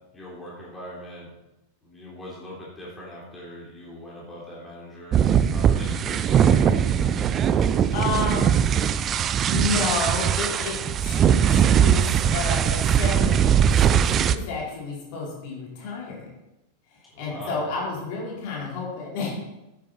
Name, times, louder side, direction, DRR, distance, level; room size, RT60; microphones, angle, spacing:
voice 1, 0.1-1.3 1.8-7.0 17.1-17.9, equal, 10° left, -6 dB, 3.5 m, -41 dB
sound 1, 5.1-14.3, right 8 dB, 30° right, 0.5 m, -20 dB
voice 2, 7.4-8.5 9.5-16.2 16.9-19.3, left 4 dB, 45° left, -4 dB, 4.5 m, -31 dB
10.0 x 10.0 x 4.3 m, 0.99 s
figure-of-eight pair, 90°, 0 cm